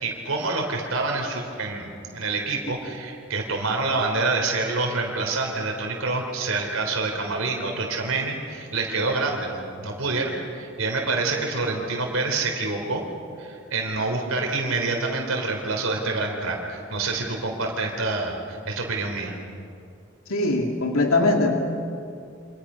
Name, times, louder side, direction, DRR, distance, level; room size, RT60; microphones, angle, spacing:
voice 1, 0.0-13.1 13.4-19.4, right 3 dB, 85° right, 1 dB, 3.7 m, -27 dB
voice 2, 20.3-21.5, left 2 dB, 90° left, 2 dB, 2.3 m, -21 dB
29.0 x 26.5 x 5.8 m, 2.5 s
head